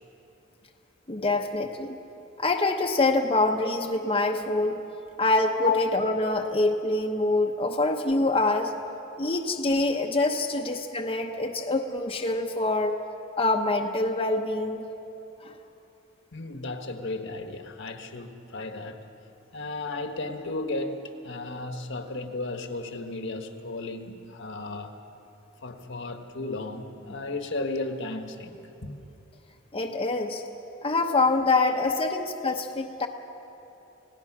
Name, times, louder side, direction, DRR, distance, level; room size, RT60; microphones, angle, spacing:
voice 1, 1.1-2.0 2.4-4.8 5.2-8.7 9.2-13.0 13.4-14.8 15.4-15.5 29.7-30.4 30.8-33.1, left 2 dB, 30° left, 1 dB, 0.9 m, -25 dB
voice 2, 5.6-6.0 10.5-10.6 16.3-19.0 19.5-25.0 25.6-29.0 31.9-32.1, left 3 dB, 60° left, 6 dB, 1.4 m, -34 dB
28.5 x 17.5 x 6.1 m, 2.9 s
head